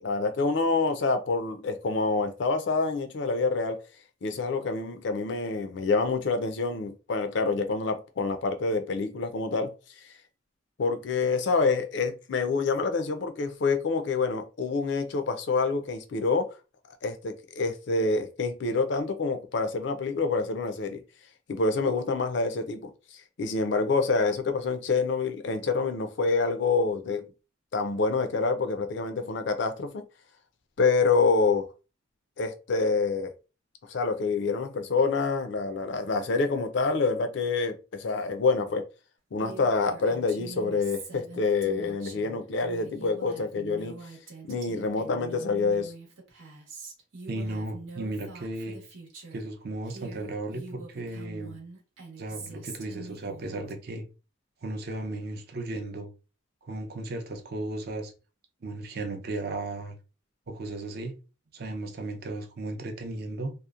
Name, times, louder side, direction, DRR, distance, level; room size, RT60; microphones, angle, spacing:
voice 1, 0.0-3.8 4.2-9.7 10.8-16.5 17.0-21.0 21.5-22.9 23.4-27.2 27.7-30.0 30.8-31.7 32.4-33.3 33.9-38.8 39.3-44.0 44.4-45.9, left 4 dB, 60° left, 0.4 m, -27 dB
Female speech woman speaking, 39.4-49.5 49.8-53.7, right 3 dB, 85° right, 0.9 m, -44 dB
voice 2, 47.3-48.8 49.3-51.6 52.2-54.0 54.6-56.1 56.6-58.1 58.6-59.9 60.5-61.1 61.5-63.5, right 2 dB, 50° right, 0.5 m, -35 dB
2.8 x 2.0 x 2.3 m
head